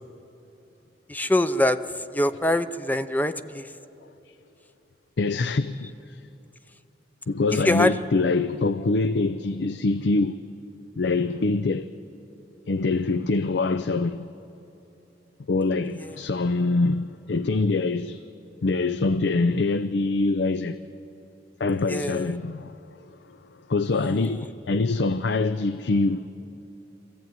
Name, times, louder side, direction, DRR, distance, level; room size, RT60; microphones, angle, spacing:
voice 1, 1.1-1.8 2.1-3.7 7.5-8.0 16.0-16.2 21.9-22.3 24.0-24.3, left 1 dB, 10° left, 0.5 m, -24 dB
voice 2, 5.2-6.2 7.3-10.4 11.0-11.9 12.7-14.3 15.5-18.2 18.6-20.8 21.6-22.8 23.7-26.3, left 3 dB, 70° left, 0.5 m, -24 dB
24.5 x 15.5 x 9.3 m
head